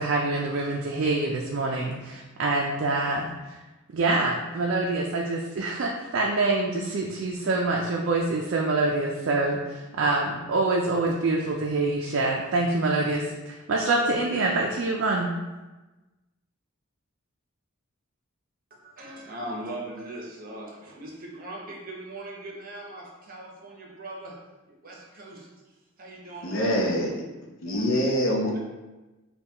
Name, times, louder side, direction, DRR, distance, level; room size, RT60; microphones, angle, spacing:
voice 1, 0.0-3.6 3.9-15.3, right 2 dB, 60° right, -1 dB, 0.4 m, -26 dB
voice 2, 18.7-24.3 24.7-26.7 27.6-27.8 28.5-28.6, right 1 dB, 40° right, -2 dB, 0.8 m, -40 dB
voice 3, 26.4-27.1 27.6-28.5, equal, 65° left, 0 dB, 0.7 m, -24 dB
5.4 x 2.3 x 2.9 m, 1.1 s
head